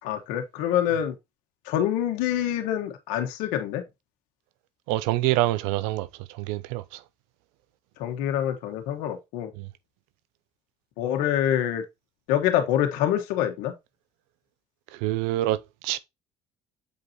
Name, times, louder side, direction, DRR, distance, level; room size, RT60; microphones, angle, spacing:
voice 1, 0.0-1.1 1.7-3.8 8.0-9.5 11.0-11.8 12.3-13.7, left 11 dB, 80° left, 1.5 m, -26 dB
voice 2, 4.9-7.0 9.6-9.7 14.9-15.6 15.8-16.0, right 16 dB, 85° right, 0.6 m, -26 dB
7.8 x 5.0 x 3.0 m
supercardioid pair, 80°, 14 cm